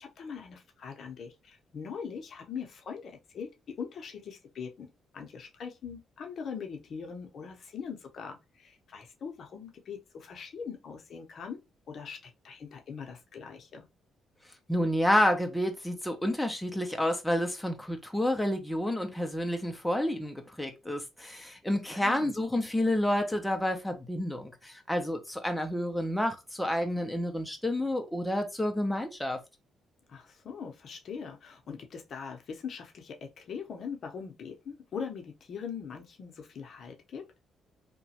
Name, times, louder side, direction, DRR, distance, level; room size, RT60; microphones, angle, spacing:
voice 1, 0.0-11.6 11.9-12.2 12.4-13.9 21.9-22.3 30.1-37.3, left 6 dB, 60° left, 0.6 m, -41 dB
voice 2, 14.7-29.4, left 1 dB, 5° left, 0.5 m, -29 dB
2.9 x 2.1 x 2.7 m
cardioid pair, 90°, 0 cm